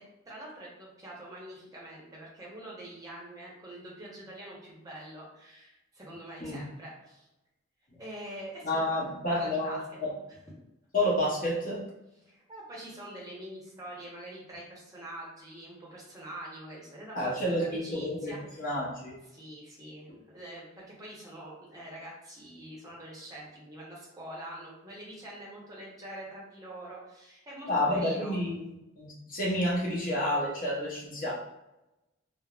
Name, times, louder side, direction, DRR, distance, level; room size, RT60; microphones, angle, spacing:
voice 1, 0.3-7.3 7.9-8.8 9.4-9.8 12.2-18.6 19.3-20.1 20.3-28.3, right 1 dB, 15° right, -5 dB, 0.7 m, -45 dB
voice 2, 8.6-9.7 10.0-10.1 10.9-11.8 17.1-18.3 18.6-19.2 27.7-28.5 29.0-31.3, left 1 dB, 45° left, -5 dB, 0.8 m, -29 dB
3.4 x 2.0 x 2.3 m, 0.93 s
head